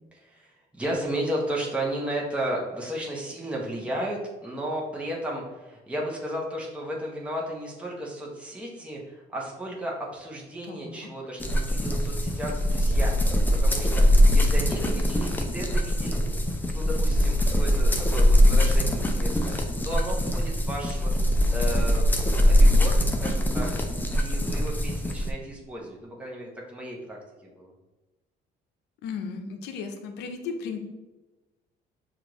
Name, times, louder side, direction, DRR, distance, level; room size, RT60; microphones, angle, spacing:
voice 1, 0.1-13.3 13.6-16.4 16.7-22.9 23.2-27.7, right 1 dB, 5° right, -3 dB, 0.9 m, -34 dB
voice 2, 10.7-11.1 14.5-15.3 29.0-30.8, left 5 dB, 85° left, 5 dB, 0.6 m, -36 dB
sound 1, 11.4-25.3, equal, 10° left, 0.5 m, -22 dB
6.2 x 2.5 x 3.0 m, 1.1 s
cardioid pair, 110°, 17 cm